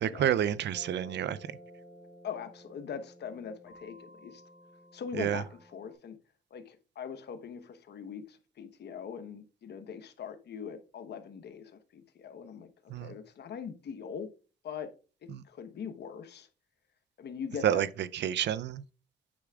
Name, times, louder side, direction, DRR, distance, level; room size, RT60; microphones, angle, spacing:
voice 1, 0.0-1.4 5.2-5.4 12.9-13.1 15.3-15.4 17.6-17.9 18.1-18.8, right 10 dB, 60° right, 0.5 m, -29 dB
sound 1, 0.7-5.9, equal, 15° right, 3.0 m, -53 dB
voice 2, 2.2-4.4 4.9-6.2 6.5-14.3 14.6-14.9 15.2-16.5 17.2-17.8, left 7 dB, 55° left, 1.1 m, -42 dB
8.5 x 5.9 x 2.4 m
cardioid pair, 90°, 20 cm